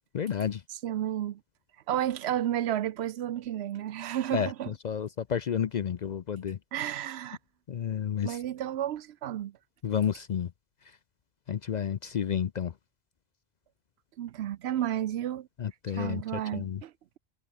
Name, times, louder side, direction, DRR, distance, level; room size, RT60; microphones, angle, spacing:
voice 1, 0.1-0.6 4.3-6.6 7.7-8.4 9.8-10.5 10.8-11.0 11.5-12.7 15.6-16.8, left 8 dB, 50° left, 0.6 m, -31 dB
voice 2, 0.8-1.4 1.9-4.7 6.7-7.4 8.2-9.6 14.2-15.5 15.9-16.9, right 11 dB, 75° right, 0.9 m, -32 dB
omnidirectional pair, 1.1 m